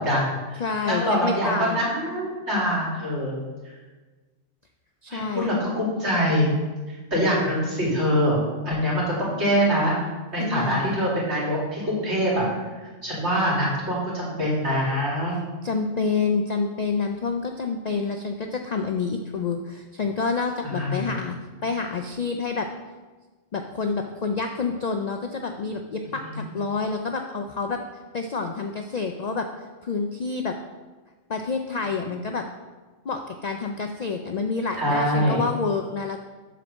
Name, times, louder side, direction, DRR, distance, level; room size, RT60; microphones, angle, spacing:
voice 1, 0.0-3.3 5.1-6.5 6.9-9.9 10.3-12.5 13.0-15.3 20.7-21.1 26.2-26.5 34.8-35.4, equal, 60° right, -6 dB, 2.7 m, -24 dB
voice 2, 0.6-1.9 5.0-5.5 10.4-11.0 15.6-21.4 21.6-22.7 23.5-27.8 28.1-29.5 29.8-30.6 31.3-32.4 33.0-36.2, left 4 dB, 70° left, 5 dB, 0.4 m, -28 dB
7.6 x 4.0 x 6.2 m, 1.3 s
omnidirectional pair, 1.3 m